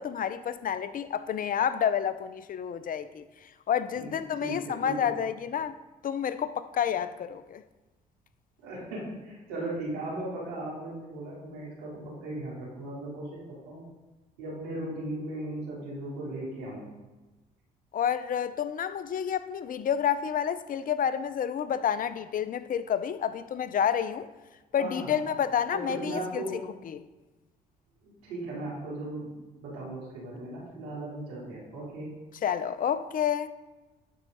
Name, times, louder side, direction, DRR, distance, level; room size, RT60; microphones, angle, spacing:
voice 1, 0.0-5.8 6.0-7.6 17.9-24.3 24.7-26.4 26.8-27.0 32.4-33.5, left 8 dB, 50° left, 0.6 m, -29 dB
voice 2, 4.0-5.1 8.6-13.8 14.4-16.9 24.8-25.1 25.7-26.6 28.0-32.1, right 1 dB, 90° right, 3.4 m, -37 dB
11.0 x 4.7 x 5.4 m
supercardioid pair, 60°, 18 cm